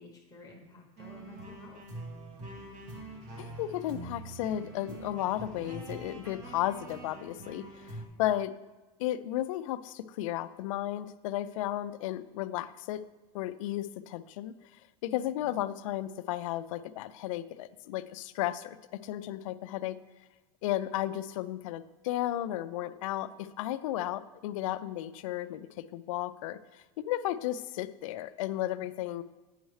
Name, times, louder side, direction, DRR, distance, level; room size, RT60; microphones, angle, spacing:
voice 1, 0.0-1.9 15.0-15.5, left 1 dB, 20° left, 0 dB, 1.1 m, -52 dB
sound 1, 1.0-8.1, right 2 dB, 45° right, 1.7 m, -44 dB
voice 2, 3.4-8.5 9.0-13.0 13.3-14.5 15.0-20.0 20.6-26.6 27.0-29.2, left 13 dB, 80° left, 12 dB, 0.4 m, -34 dB
9.0 x 6.3 x 3.2 m, 1.2 s
supercardioid pair, 130°, 17 cm